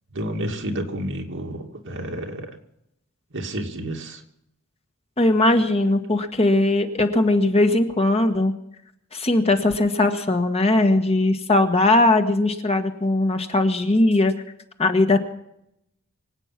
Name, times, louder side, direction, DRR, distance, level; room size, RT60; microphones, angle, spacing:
voice 1, 0.1-2.5 3.3-4.2, right 1 dB, 60° right, 2 dB, 2.5 m, -30 dB
voice 2, 5.2-8.5 9.1-14.3 14.8-15.2, left 2 dB, 30° left, 6 dB, 1.4 m, -19 dB
24.5 x 8.9 x 5.9 m, 0.78 s
head